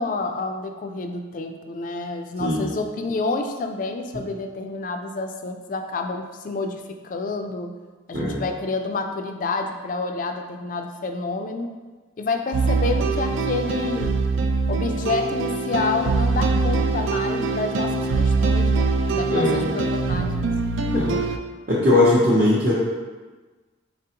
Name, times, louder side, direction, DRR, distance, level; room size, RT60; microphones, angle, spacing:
voice 1, 0.0-7.7 8.1-11.7 12.2-14.1 14.7-20.3 20.9-21.2, left 3 dB, 45° left, 5 dB, 0.3 m, -28 dB
sound 1, 12.5-21.4, right 3 dB, 85° right, 0.3 m, -23 dB
voice 2, 19.3-19.7 20.9-21.1 21.7-22.7, left 1 dB, 50° right, -9 dB, 0.7 m, -19 dB
4.1 x 3.7 x 2.8 m, 1.3 s
head